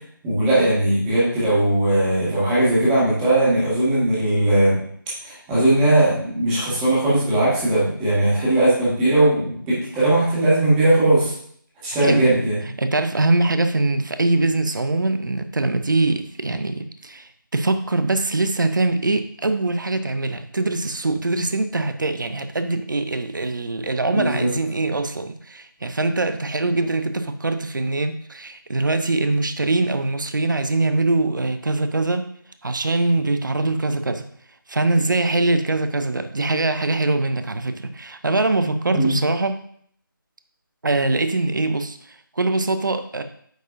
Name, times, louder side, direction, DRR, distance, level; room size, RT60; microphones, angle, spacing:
voice 1, 0.2-4.8 5.2-11.3 11.8-12.6 24.1-24.5 38.9-39.1, right 1 dB, 10° right, -9 dB, 1.8 m, -19 dB
voice 2, 12.0-12.4 12.8-32.3 32.6-34.3 34.7-39.6 40.8-43.2, right 2 dB, 60° right, 9 dB, 0.7 m, -23 dB
9.1 x 4.5 x 2.6 m, 0.62 s
figure-of-eight pair, 160°, 12 cm